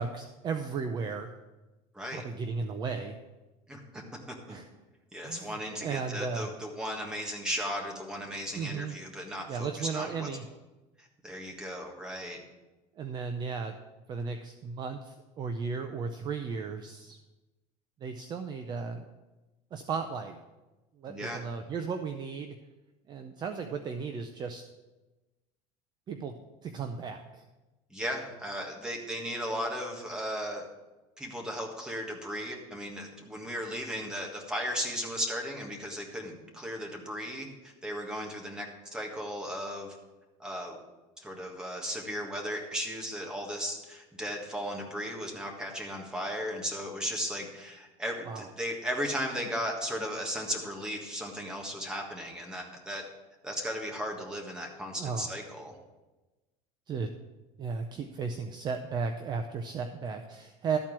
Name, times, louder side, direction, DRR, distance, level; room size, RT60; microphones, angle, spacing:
voice 1, 0.0-1.3 2.1-3.2 4.5-4.7 5.2-6.5 8.5-8.9 9.5-10.4 13.0-13.8 14.1-17.2 18.0-19.1 19.7-20.3 21.0-22.6 23.1-24.6 26.1-26.3 26.6-27.4 48.2-48.5 55.0-55.3 56.9-57.1 57.6-60.8, right 5 dB, 30° right, 6 dB, 0.6 m, -35 dB
voice 2, 3.7-4.0 4.5-4.6 5.1-10.3 11.0-12.4 21.1-21.4 27.9-30.6 31.2-40.0 40.4-40.8 41.2-53.0 53.4-55.8, equal, 5° right, 0 dB, 1.6 m, -36 dB
13.0 x 4.5 x 7.4 m, 1.1 s
cardioid pair, 155°, 15 cm